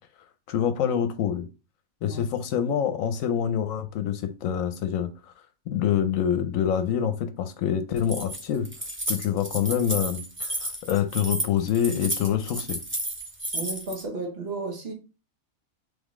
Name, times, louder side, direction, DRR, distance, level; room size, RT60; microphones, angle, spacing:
voice 1, 0.5-1.5 2.0-5.1 5.7-8.7 9.1-12.8, left 9 dB, 80° left, 1.0 m, -26 dB
Keys jangling, 8.0-14.0, right 1 dB, 10° right, 0.6 m, -32 dB
voice 2, 13.5-14.9, right 3 dB, 50° right, 1.3 m, -33 dB
3.6 x 3.5 x 3.6 m
omnidirectional pair, 1.4 m